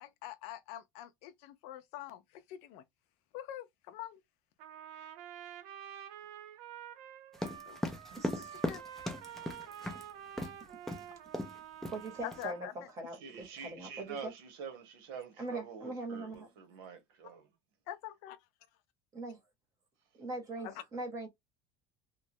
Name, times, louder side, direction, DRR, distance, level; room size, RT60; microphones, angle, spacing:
voice 1, 0.0-2.8 3.3-4.2 7.7-7.8 8.4-8.8 12.2-12.7 17.9-18.4 20.6-20.7, left 12 dB, 60° left, 0.5 m, -45 dB
Trumpet, 4.6-12.7, right 10 dB, 60° right, 0.6 m, -49 dB
sound 1, 7.3-10.0 10.4-10.6 10.9-11.0 11.3-11.6 11.8-12.4, left 1 dB, 5° left, 0.4 m, -37 dB
voice 2, 8.1-8.6 11.9-14.3 15.4-16.5 19.1-19.4 20.2-21.3, right 2 dB, 25° right, 0.9 m, -41 dB
voice 3, 13.1-17.5, right 7 dB, 80° right, 1.1 m, -46 dB
3.0 x 2.2 x 2.7 m
cardioid pair, 170°, 12 cm